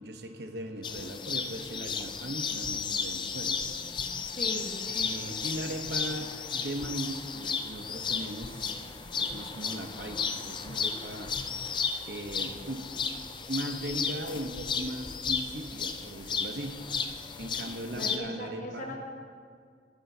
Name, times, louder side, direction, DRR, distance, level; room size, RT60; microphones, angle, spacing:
voice 1, 0.0-3.6 4.9-8.7 9.2-11.3 11.6-11.7 12.1-12.9 13.5-16.8 17.4-18.9, right 1 dB, 70° right, 5 dB, 0.9 m, -38 dB
sound 1, 0.8-18.2, left 6 dB, 25° left, 0.4 m, -34 dB
voice 2, 4.4-4.8 17.9-19.0, left 1 dB, 45° left, 1 dB, 1.4 m, -38 dB
18.5 x 10.0 x 2.8 m, 2.1 s
head